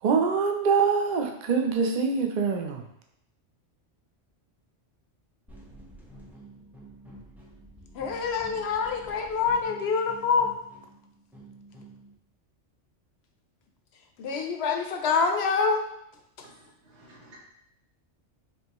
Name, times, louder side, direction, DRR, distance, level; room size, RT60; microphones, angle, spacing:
voice 1, 0.0-2.9, right 5 dB, 55° right, 3 dB, 0.5 m, -24 dB
sound 1, 5.5-12.1, right 1 dB, ahead, 0.5 m, -49 dB
voice 2, 7.9-10.5 14.2-15.9 16.4-16.5, left 5 dB, 70° left, 5 dB, 0.8 m, -26 dB
voice 3, 16.4-17.4, right 1 dB, 75° right, -3 dB, 1.4 m, -53 dB
5.3 x 2.7 x 2.9 m, 0.75 s
omnidirectional pair, 1.2 m